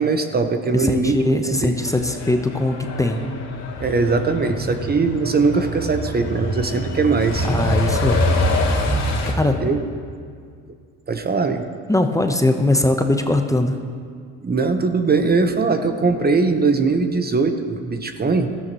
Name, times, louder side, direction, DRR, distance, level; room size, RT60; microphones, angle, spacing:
voice 1, 0.0-1.7 3.8-7.5 9.6-9.8 11.1-11.7 14.4-18.5, right 4 dB, 30° right, 7 dB, 1.0 m, -20 dB
voice 2, 0.7-3.2 7.4-8.3 9.3-9.7 11.9-13.8, left 1 dB, 10° left, 5 dB, 1.0 m, -20 dB
Truck, 1.8-9.3, left 1 dB, 55° left, 2.2 m, -24 dB
16.5 x 13.5 x 3.1 m, 2.1 s
hypercardioid pair, 60°, 32 cm